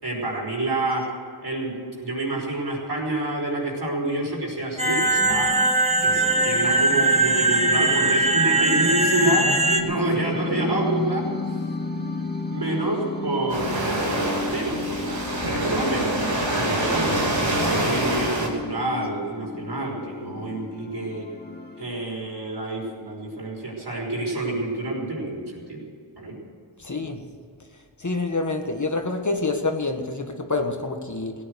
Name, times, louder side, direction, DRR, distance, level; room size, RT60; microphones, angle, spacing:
voice 1, 0.0-1.2 1.4-5.5 6.0-11.3 12.5-21.3 21.8-25.8 26.2-26.4, right 2 dB, 60° right, -2 dB, 5.3 m, -28 dB
sound 1, 4.8-9.8, right 2 dB, 15° right, 1.5 m, -20 dB
sound 2, 4.9-21.9, left 3 dB, 20° left, 2.1 m, -33 dB
Waves surf, 13.5-18.5, right 1 dB, 85° right, 2.9 m, -25 dB
voice 2, 26.8-27.2 28.0-31.3, left 3 dB, 40° left, 4 dB, 1.6 m, -27 dB
16.5 x 9.9 x 8.1 m, 2.2 s
wide cardioid pair, 55°, 44 cm